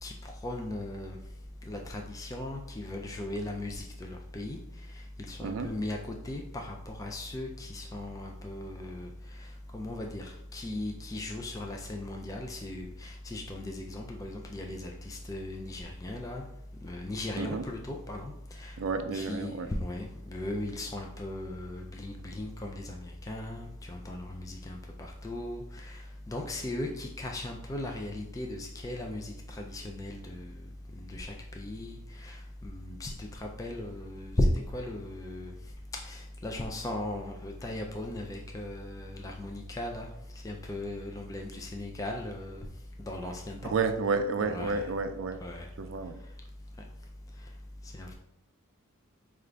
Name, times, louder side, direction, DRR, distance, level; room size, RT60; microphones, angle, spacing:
voice 1, 0.0-1.2 1.6-4.6 5.2-9.1 9.4-9.5 9.7-16.4 16.8-18.8 19.1-30.6 31.0-34.5 34.7-35.5 35.9-40.1 40.4-42.7 43.1-43.7 44.4-44.9 45.4-45.7 47.9-48.2, left 1 dB, 15° left, 1 dB, 0.3 m, -37 dB
voice 2, 18.8-19.7 43.7-45.4 45.8-46.2, right 4 dB, 65° right, 8 dB, 0.4 m, -30 dB
4.9 x 2.4 x 3.3 m, 0.80 s
head